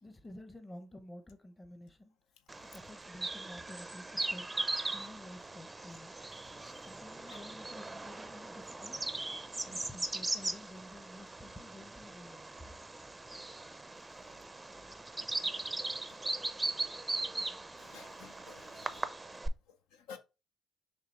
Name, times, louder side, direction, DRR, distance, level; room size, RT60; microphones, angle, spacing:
voice 1, 0.0-2.2 2.6-4.5 4.9-6.1 6.8-9.1 9.6-12.5, left 1 dB, 20° left, 0.8 m, -51 dB
Bird vocalization bird call bird song, 2.5-19.5, right 2 dB, 15° right, 0.4 m, -39 dB
voice 2, 17.7-19.1 19.7-20.2, left 6 dB, 85° left, 0.5 m, -53 dB
6.4 x 2.4 x 3.0 m
supercardioid pair, 75°, 0 cm